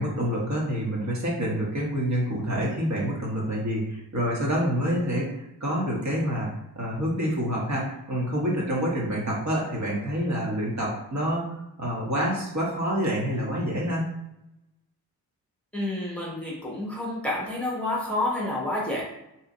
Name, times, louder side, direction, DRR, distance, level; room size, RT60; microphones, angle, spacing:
voice 1, 0.0-11.5 11.8-14.1, equal, 50° right, -3 dB, 1.2 m, -27 dB
voice 2, 15.7-19.0, left 1 dB, 5° left, -4 dB, 0.9 m, -29 dB
2.9 x 2.4 x 3.8 m, 0.86 s
cardioid pair, 80°, 37 cm